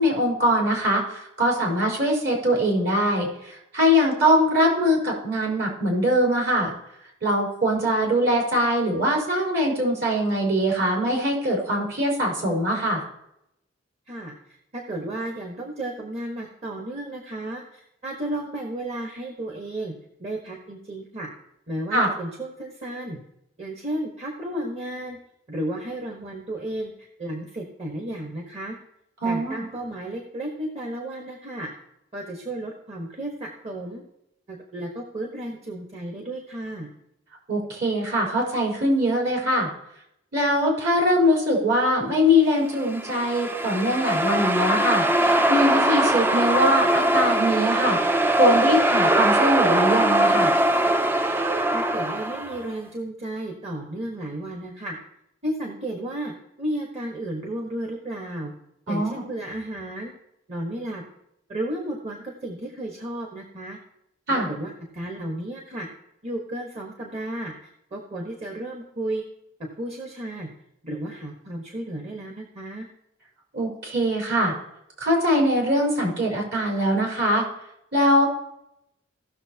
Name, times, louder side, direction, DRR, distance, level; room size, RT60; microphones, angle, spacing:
voice 1, 0.0-6.7 7.2-13.0 21.9-22.1 29.2-29.6 37.5-39.7 40.3-45.1 45.5-50.5 58.9-59.2 64.3-64.5 73.5-74.6 75.0-77.4 77.9-78.3, equal, 60° right, -3 dB, 4.3 m, -22 dB
voice 2, 14.1-19.9 20.2-21.3 21.7-23.2 23.6-25.2 25.5-26.9 27.2-28.7 29.2-31.7 32.1-34.0 34.5-36.9 51.7-55.0 55.4-58.5 58.9-60.1 60.5-61.0 61.5-63.8 64.3-65.9 66.2-69.2 69.8-70.5 70.8-72.9, right 1 dB, 35° right, 0 dB, 1.3 m, -33 dB
sound 1, 42.8-52.6, right 1 dB, 10° right, 0.4 m, -21 dB
17.5 x 6.6 x 2.9 m, 0.80 s
head